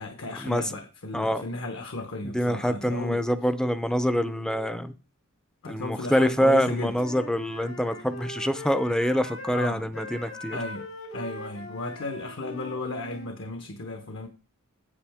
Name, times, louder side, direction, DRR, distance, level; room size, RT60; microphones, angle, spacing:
voice 1, 0.0-3.2 5.6-6.9 9.5-9.9 10.5-10.8 11.1-14.3, left 2 dB, 60° left, 1.0 m, -34 dB
voice 2, 2.2-4.9 5.7-10.6, equal, 5° left, 0.5 m, -25 dB
Wind instrument woodwind instrument, 6.5-13.3, left 1 dB, 75° left, 2.7 m, -41 dB
8.7 x 7.9 x 3.5 m
head